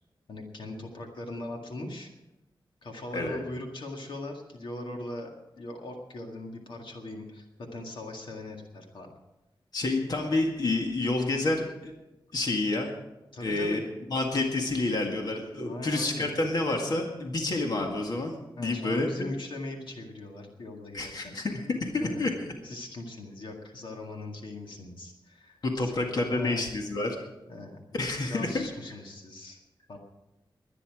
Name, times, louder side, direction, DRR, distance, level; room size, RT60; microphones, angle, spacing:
voice 1, 0.3-2.1 2.8-5.3 5.6-9.1 13.3-13.9 15.7-16.3 18.6-21.4 22.0-22.2 22.6-25.9 26.2-26.7 27.5-27.8 28.3-29.6 29.9-30.0, left 2 dB, 70° left, 2 dB, 2.0 m, -40 dB
voice 2, 3.1-3.4 9.7-11.9 12.3-12.9 13.4-13.8 14.1-19.1 20.9-22.3 25.6-27.2 27.9-28.5, left 2 dB, 50° left, 2 dB, 1.9 m, -29 dB
22.0 x 9.9 x 4.9 m, 1.0 s
wide cardioid pair, 180°, 9 cm